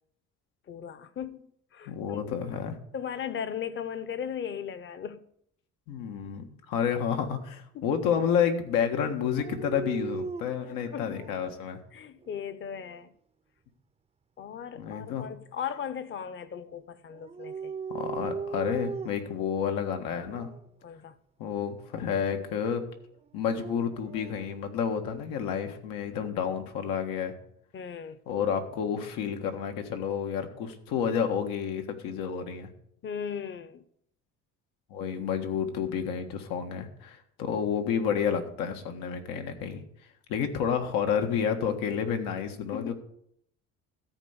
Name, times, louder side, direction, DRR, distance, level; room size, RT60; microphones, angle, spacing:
voice 1, 0.7-1.4 1.7-2.2 2.9-5.2 7.7-7.9 10.9-11.3 11.9-13.1 14.4-17.7 20.8-21.1 27.7-28.2 33.0-33.8 42.7-42.9, left 8 dB, 35° left, 0.8 m, -37 dB
voice 2, 1.9-2.8 5.9-11.8 14.8-15.3 17.9-20.5 21.4-22.8 23.3-27.3 28.3-32.7 34.9-39.8 40.3-42.9, left 7 dB, 90° left, 1.6 m, -30 dB
Dog, 9.4-11.6 12.2-13.0 17.1-19.4 20.2-20.6 23.2-24.5, right 5 dB, 20° right, 0.5 m, -39 dB
13.5 x 4.5 x 8.0 m
cardioid pair, 130°, 33 cm